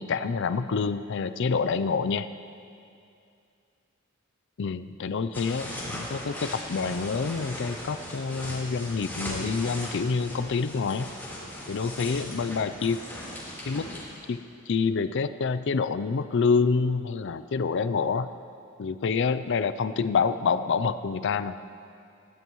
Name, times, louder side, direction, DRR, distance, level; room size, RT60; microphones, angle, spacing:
voice 1, 0.0-2.3 4.6-11.1 11.7-13.0 13.7-13.9 14.3-14.4 14.7-18.3 18.8-21.6, left 5 dB, 60° left, 13 dB, 0.5 m, -27 dB
sound 1, 5.3-14.0, left 1 dB, 10° left, 3.8 m, -38 dB
21.0 x 14.5 x 3.1 m, 2.5 s
head